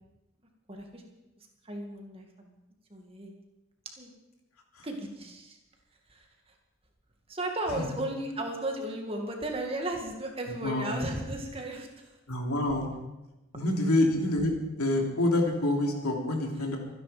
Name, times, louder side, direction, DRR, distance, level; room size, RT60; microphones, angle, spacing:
voice 1, 0.7-1.0 1.6-2.5 2.9-3.3 4.0-4.1 4.8-5.6 6.1-6.3 7.3-12.2, right 1 dB, 25° right, 2 dB, 2.2 m, -35 dB
voice 2, 10.6-10.9 12.3-12.9 13.5-14.5 14.8-16.8, left 1 dB, 90° left, 1 dB, 3.3 m, -27 dB
24.5 x 10.5 x 5.2 m, 1.0 s
head